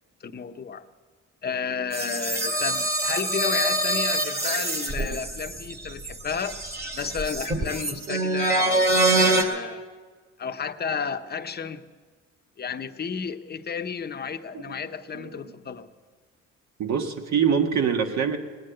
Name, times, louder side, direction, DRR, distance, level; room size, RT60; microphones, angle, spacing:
voice 1, 0.2-0.8 1.4-6.6 6.9-9.8 10.4-11.8 12.6-15.9, left 6 dB, 35° left, 8 dB, 0.8 m, -32 dB
sound 1, 1.9-9.4, right 2 dB, 30° right, 2.2 m, -25 dB
voice 2, 15.1-15.5 16.8-18.4, right 7 dB, 65° right, 5 dB, 1.6 m, -24 dB
19.0 x 9.4 x 7.7 m, 1.5 s
cardioid pair, 90°, 30 cm